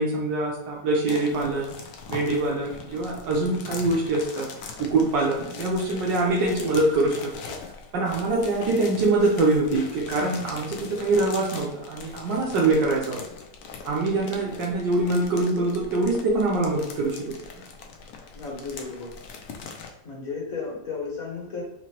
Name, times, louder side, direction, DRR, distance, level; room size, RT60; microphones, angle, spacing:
voice 1, 0.0-1.7 2.1-4.5 4.8-7.3 7.9-13.2 13.8-17.4, right 2 dB, 75° right, -3 dB, 1.4 m, -24 dB
sound 1, 1.1-19.9, left 5 dB, 70° left, 0.8 m, -41 dB
voice 2, 2.4-2.8 5.3-5.7 10.6-10.9 14.1-14.2 18.3-19.1 20.0-21.6, left 4 dB, 50° left, -4 dB, 1.8 m, -35 dB
4.7 x 2.9 x 3.0 m, 0.83 s
omnidirectional pair, 2.0 m